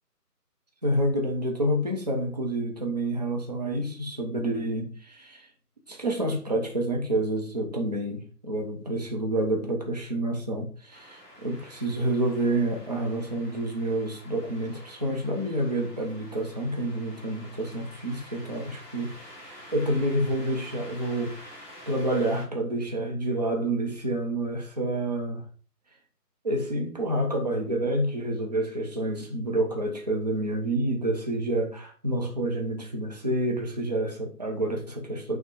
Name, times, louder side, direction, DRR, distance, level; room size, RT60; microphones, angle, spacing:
voice 1, 0.8-5.5 5.9-21.6 21.9-25.4 26.4-35.4, right 1 dB, 25° right, 0.9 m, -28 dB
sound 1, 10.9-22.4, equal, 5° left, 2.0 m, -48 dB
5.9 x 3.6 x 4.6 m
figure-of-eight pair, 155°, 48 cm